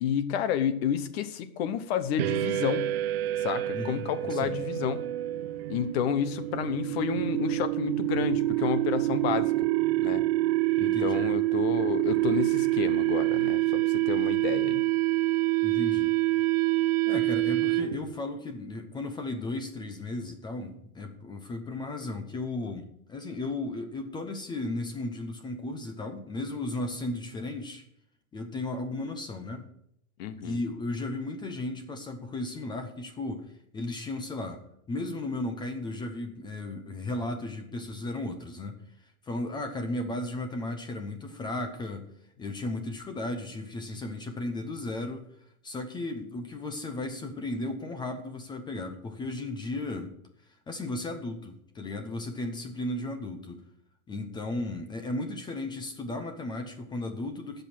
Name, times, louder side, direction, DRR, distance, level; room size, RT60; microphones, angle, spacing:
voice 1, 0.0-2.9 3.4-5.0 5.7-9.7 10.0-10.2 10.8-14.8 30.2-30.6, left 9 dB, 45° left, 12 dB, 1.0 m, -30 dB
sound 1, 2.2-18.1, right 18 dB, 45° right, 0.6 m, -27 dB
voice 2, 3.7-4.6 5.3-5.5 10.8-11.3 15.6-16.1 17.1-27.8 28.3-29.7 30.4-34.6 34.9-42.1 42.4-45.3 45.6-50.1 50.7-53.6 54.1-57.6, left 2 dB, 10° left, 6 dB, 0.7 m, -35 dB
15.0 x 5.4 x 6.0 m, 0.76 s
hypercardioid pair, 145°, 42 cm